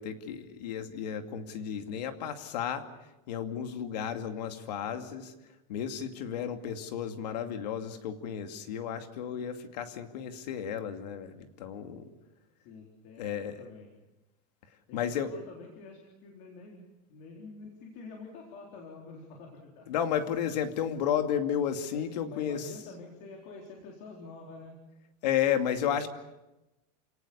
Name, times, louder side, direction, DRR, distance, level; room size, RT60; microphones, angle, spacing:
voice 1, 0.0-2.8 3.3-5.3 5.7-12.1 13.2-13.6 14.9-15.3 19.9-22.7 25.2-26.1, left 9 dB, 80° left, 7 dB, 2.5 m, -32 dB
voice 2, 12.6-13.9 14.9-16.8 17.1-19.9 21.9-24.8, left 3 dB, 45° left, 0 dB, 4.1 m, -48 dB
29.0 x 18.5 x 7.1 m, 0.99 s
supercardioid pair, 170°, 21 cm